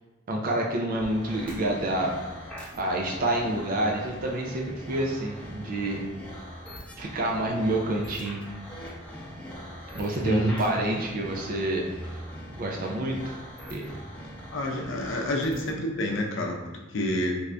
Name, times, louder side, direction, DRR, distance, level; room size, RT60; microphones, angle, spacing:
voice 1, 0.3-2.1 2.7-6.0 7.0-8.4 9.9-11.9 12.6-13.4 13.7-13.9, right 1 dB, 45° right, -1 dB, 0.4 m, -28 dB
sound 1, 1.0-15.8, equal, 5° left, 0.7 m, -42 dB
voice 2, 10.2-10.6 14.5-17.4, left 1 dB, 65° left, 1 dB, 0.5 m, -28 dB
3.4 x 2.5 x 3.3 m, 1.2 s
head